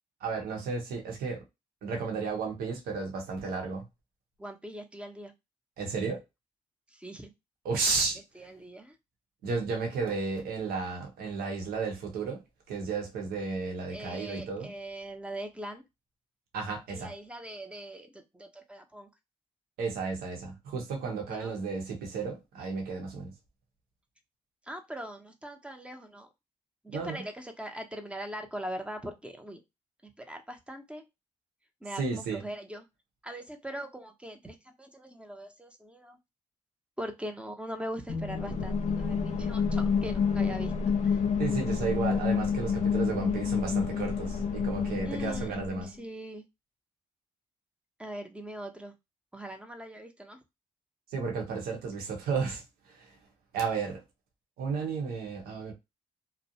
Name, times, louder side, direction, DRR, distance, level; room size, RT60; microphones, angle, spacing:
voice 1, 0.2-1.4 1.8-3.8 5.8-6.2 7.6-8.2 9.4-12.4 12.7-14.7 16.5-17.1 19.8-23.3 26.9-27.2 32.0-32.4 41.4-45.9 51.1-53.1 53.5-54.0 54.6-55.7, right 4 dB, 75° right, 0.9 m, -33 dB
voice 2, 4.4-5.3 6.9-7.3 8.3-8.9 13.9-15.8 16.9-19.1 21.3-21.5 24.7-26.3 26.8-29.6 30.0-31.0 31.8-32.9 33.2-36.2 37.0-40.7 41.0-41.2 45.1-45.5 45.8-46.4 48.0-48.9 49.3-50.4, right 1 dB, 5° right, 0.7 m, -41 dB
sound 1, 38.1-45.9, left 6 dB, 50° left, 0.6 m, -29 dB
2.6 x 2.0 x 2.7 m
hypercardioid pair, 45°, 16 cm